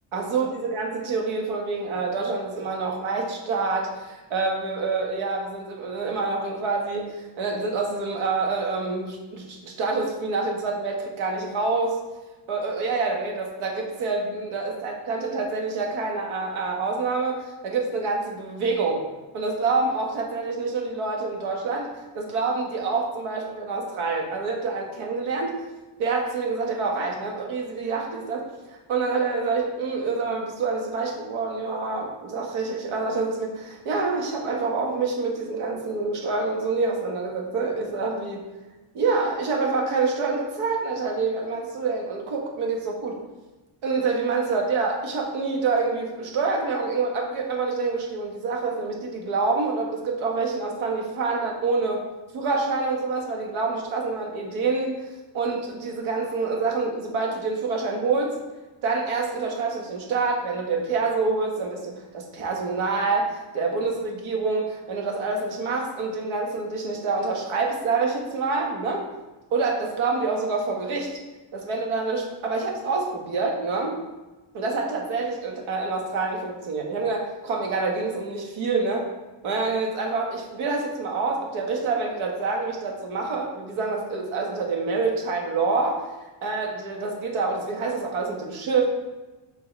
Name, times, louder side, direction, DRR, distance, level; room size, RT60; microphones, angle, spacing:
voice 1, 0.1-12.0 12.5-19.0 19.3-21.9 22.1-25.6 26.0-38.5 38.9-43.2 43.8-52.0 52.3-55.1 55.3-58.3 58.8-69.0 69.5-71.1 71.5-74.0 74.5-79.1 79.4-86.0 86.4-88.9, right 4 dB, 80° right, 0 dB, 1.8 m, -27 dB
7.4 x 5.3 x 3.4 m, 1.1 s
cardioid pair, 165°, 48 cm